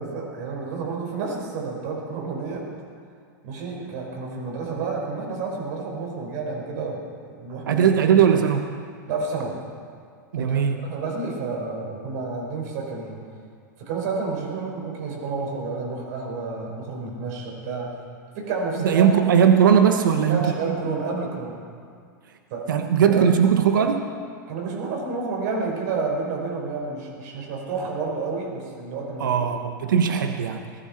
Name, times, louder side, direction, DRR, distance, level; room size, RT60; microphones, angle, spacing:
voice 1, 0.0-2.7 3.4-7.9 9.1-9.6 10.4-13.2 13.8-18.0 18.4-19.1 20.3-21.6 22.5-22.7 23.0-23.2 24.5-29.4, right 4 dB, 60° right, -1 dB, 5.4 m, -30 dB
voice 2, 7.7-8.7 10.3-10.8 18.8-20.4 22.7-24.1 29.2-30.6, right 8 dB, 85° right, 6 dB, 1.2 m, -19 dB
20.0 x 14.5 x 4.4 m, 2.1 s
hypercardioid pair, 125°, 10 cm